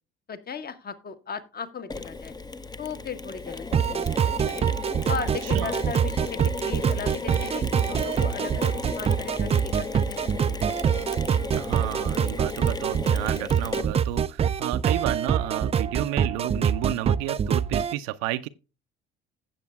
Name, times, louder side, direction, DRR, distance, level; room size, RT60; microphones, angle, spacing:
voice 1, 0.3-2.3 2.8-4.1 4.4-4.7 5.1-10.6, left 6 dB, 30° left, 1.3 m, -37 dB
Mechanisms, 1.9-14.2, left 4 dB, 15° left, 0.7 m, -35 dB
sound 1, 3.7-17.9, right 8 dB, 20° right, 0.4 m, -25 dB
voice 2, 5.4-5.7 11.5-18.5, right 15 dB, 60° right, 0.6 m, -31 dB
16.0 x 7.5 x 2.3 m
figure-of-eight pair, 55°, 29 cm